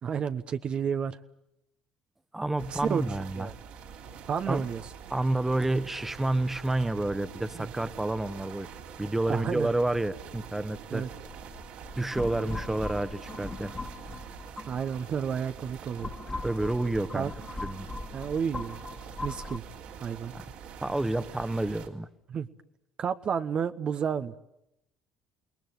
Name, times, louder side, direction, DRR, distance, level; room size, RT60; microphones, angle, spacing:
voice 1, 0.0-1.2 2.7-3.0 3.4-3.5 4.3-4.8 7.5-7.7 9.3-9.7 10.9-11.1 14.7-16.1 17.1-17.3 18.1-18.8 19.2-19.6 20.0-20.3 22.3-22.5 23.0-24.4, right 7 dB, 50° right, 9 dB, 1.1 m, -31 dB
voice 2, 2.3-3.5 4.5-4.7 5.1-8.7 9.0-11.0 11.9-13.7 16.4-17.3 17.6-17.9 20.8-22.1, right 2 dB, 10° right, 13 dB, 1.4 m, -29 dB
sound 1, 2.6-21.9, right 7 dB, 70° right, 3.3 m, -45 dB
sound 2, 11.3-15.1 15.7-19.6, left 3 dB, 20° left, 2.0 m, -40 dB
28.5 x 20.5 x 9.3 m, 0.84 s
hypercardioid pair, 60°, 2 cm